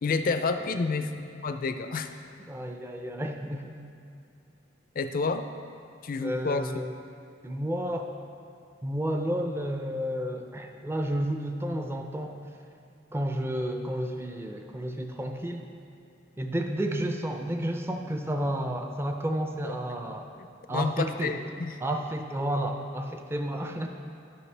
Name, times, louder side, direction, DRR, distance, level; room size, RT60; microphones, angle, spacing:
voice 1, 0.0-2.1 5.0-5.5 6.0-6.7 19.6-19.7 20.7-21.7, left 4 dB, 45° left, 8 dB, 0.4 m, -29 dB
voice 2, 2.5-3.8 6.2-6.9 7.4-8.1 8.8-12.3 13.1-15.6 16.4-20.3 20.7-21.4 21.8-23.9, right 1 dB, 15° right, 4 dB, 0.4 m, -31 dB
12.0 x 5.5 x 3.3 m, 2.7 s
head